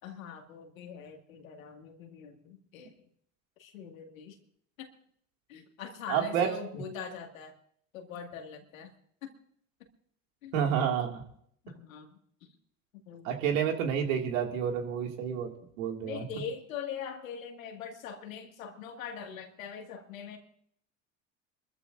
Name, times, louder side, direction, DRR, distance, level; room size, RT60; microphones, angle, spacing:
voice 1, 0.0-2.9 3.6-4.4 4.8-4.9 5.5-7.6 7.9-8.9 9.2-9.3 10.4-10.6 11.6-12.2 13.1-13.5 16.0-20.4, left 7 dB, 85° left, 4 dB, 2.2 m, -42 dB
voice 2, 6.1-6.5 10.5-11.2 13.2-15.5 15.8-16.2, right 8 dB, 80° right, 3 dB, 2.3 m, -29 dB
24.5 x 14.0 x 2.6 m, 0.65 s
hypercardioid pair, 75°, 39 cm